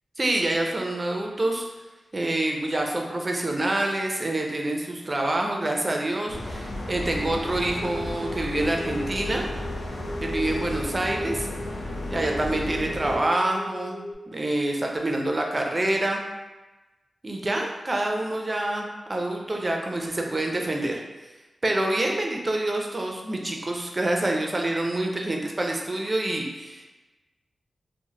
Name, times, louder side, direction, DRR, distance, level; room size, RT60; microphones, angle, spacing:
voice 1, 0.2-1.7 2.1-9.5 10.2-11.5 12.1-14.0 14.3-16.2 17.2-21.0 21.6-26.8, right 1 dB, 30° right, 1 dB, 0.4 m, -27 dB
sound 1, 6.3-13.2, left 1 dB, 65° left, 0.5 m, -33 dB
sound 2, 7.2-14.1, left 1 dB, 20° left, 1.0 m, -38 dB
3.0 x 2.0 x 2.7 m, 1.1 s
wide cardioid pair, 95°, 0 cm